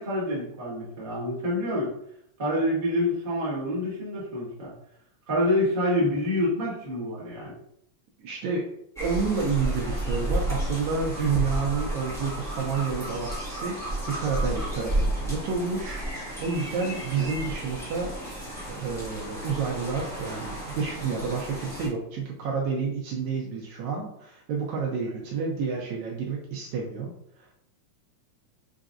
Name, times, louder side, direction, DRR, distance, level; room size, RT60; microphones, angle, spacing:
voice 1, 0.0-1.9 2.4-4.7 5.3-7.5 17.1-17.3, left 1 dB, 25° right, -8 dB, 1.4 m, -27 dB
voice 2, 8.2-18.1 18.7-27.1 27.4-27.5, right 5 dB, 75° right, -2 dB, 1.9 m, -30 dB
sound 1, 8.9-21.9, right 1 dB, 5° left, 0.6 m, -32 dB
5.1 x 3.7 x 2.5 m, 0.73 s
omnidirectional pair, 3.5 m